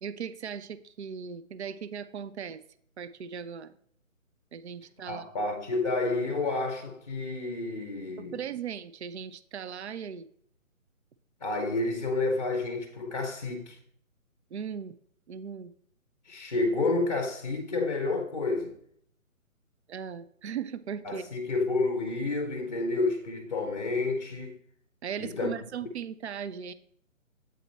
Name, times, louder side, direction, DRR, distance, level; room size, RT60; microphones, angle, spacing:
voice 1, 0.0-2.6 3.0-3.7 4.5-5.3 8.2-10.3 14.5-14.9 15.3-15.7 19.9-21.3 25.0-26.7, right 7 dB, 55° right, 0.4 m, -38 dB
voice 2, 5.1-8.4 11.4-13.8 16.3-18.7 21.0-24.6 25.2-25.6, left 3 dB, 30° left, 0.6 m, -30 dB
8.3 x 4.2 x 4.1 m
figure-of-eight pair, 155°, 41 cm